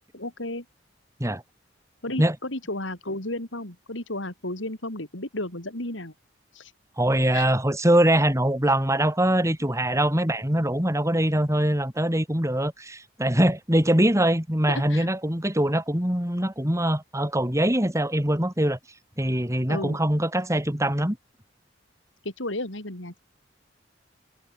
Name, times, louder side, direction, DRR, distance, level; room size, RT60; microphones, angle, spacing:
voice 1, 0.1-0.6 2.0-6.1 6.5-6.7 7.3-7.5 14.7-15.1 19.7-20.0 22.2-23.2, left 1 dB, 80° left, 6.4 m, -33 dB
voice 2, 7.0-18.8 19.2-21.2, right 1 dB, 15° right, 4.8 m, -23 dB
head